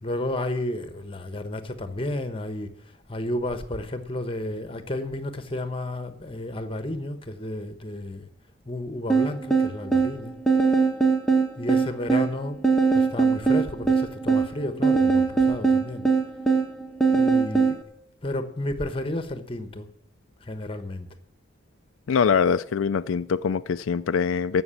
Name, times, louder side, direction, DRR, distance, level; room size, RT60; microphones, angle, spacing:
voice 1, 0.0-2.7 3.1-8.3 8.6-10.4 11.6-12.6 12.9-16.0 17.1-17.8 18.2-19.9 20.4-21.1, left 1 dB, 25° left, 1.1 m, -32 dB
sound 1, 9.1-17.8, right 4 dB, 5° left, 1.2 m, -21 dB
voice 2, 22.1-24.6, left 6 dB, 80° left, 0.4 m, -23 dB
15.0 x 6.1 x 8.4 m
head